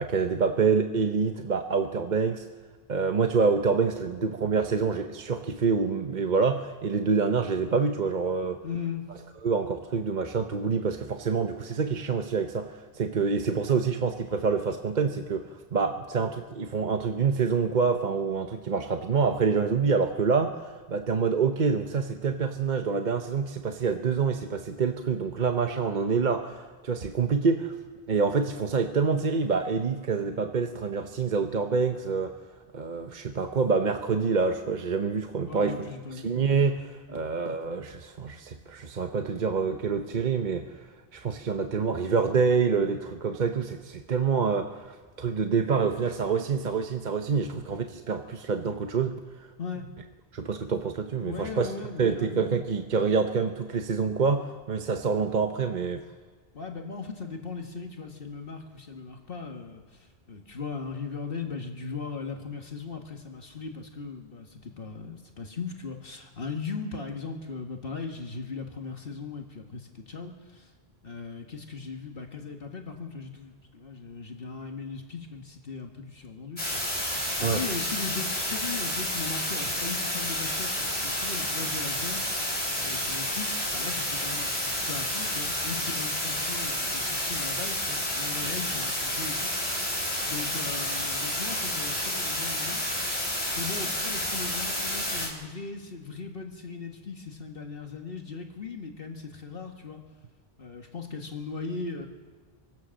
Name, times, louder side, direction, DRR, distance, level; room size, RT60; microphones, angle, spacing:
voice 1, 0.0-2.4 2.9-8.6 9.4-27.7 28.1-32.3 32.7-35.8 36.2-40.7 41.1-49.5 50.3-51.7 52.0-56.0 77.4-77.6, right 5 dB, 50° right, 6 dB, 1.0 m, -26 dB
voice 2, 8.6-9.0 35.5-36.3 37.1-37.2 49.6-49.9 51.2-52.6 56.5-70.7 71.0-100.0 100.6-102.1, left 5 dB, 65° left, 3 dB, 1.8 m, -38 dB
sound 1, 76.6-95.3, left 1 dB, 35° left, 4.3 m, -30 dB
25.0 x 16.5 x 6.4 m, 1.4 s
omnidirectional pair, 1.0 m